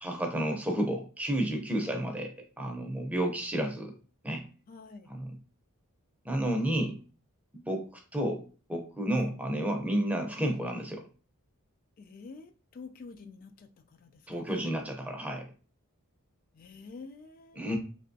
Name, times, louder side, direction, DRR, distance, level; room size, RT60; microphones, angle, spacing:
voice 1, 0.0-3.9 4.2-4.5 5.1-5.3 6.2-7.0 7.5-8.4 8.7-11.0 14.3-15.5 17.5-17.8, right 1 dB, 5° right, 0.6 m, -31 dB
voice 2, 4.7-5.1 9.1-9.3 12.0-14.7 16.5-17.7, left 4 dB, 40° left, 0.3 m, -48 dB
3.3 x 2.8 x 2.7 m
head